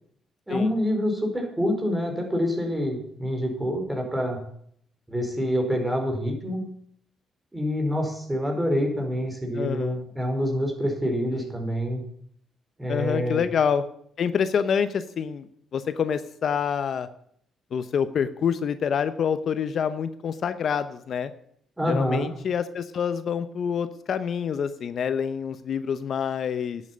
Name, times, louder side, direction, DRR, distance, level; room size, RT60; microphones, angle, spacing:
voice 1, 0.5-4.4 5.1-6.6 7.5-12.0 12.8-13.4 21.8-22.3, equal, 10° right, 3 dB, 4.8 m, -26 dB
voice 2, 9.5-10.0 11.3-11.5 12.9-13.8 14.2-15.5 15.7-17.1 17.7-21.3 21.9-26.8, left 7 dB, 60° left, 12 dB, 0.8 m, -27 dB
11.0 x 8.7 x 8.7 m, 0.67 s
cardioid pair, 90°, 0 cm